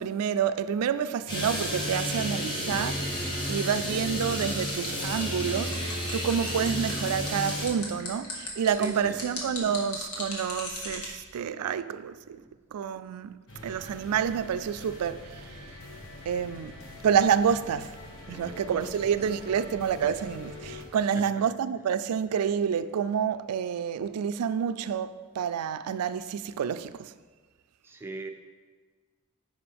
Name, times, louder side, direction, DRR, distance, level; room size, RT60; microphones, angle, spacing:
voice 1, 0.0-12.4 12.7-15.6 16.3-16.7 17.0-18.0 18.3-27.1, right 7 dB, 90° right, 0.4 m, -28 dB
sound 1, 1.3-7.7, equal, 20° left, 1.2 m, -31 dB
sound 2, 4.2-11.1, left 3 dB, 85° left, 1.7 m, -38 dB
voice 2, 8.7-9.2 12.4-12.5 18.2-19.6 20.9-21.4 27.8-28.3, right 2 dB, 10° right, 0.5 m, -42 dB
sound 3, 13.5-20.9, left 1 dB, 60° left, 1.5 m, -45 dB
9.7 x 5.4 x 3.5 m
head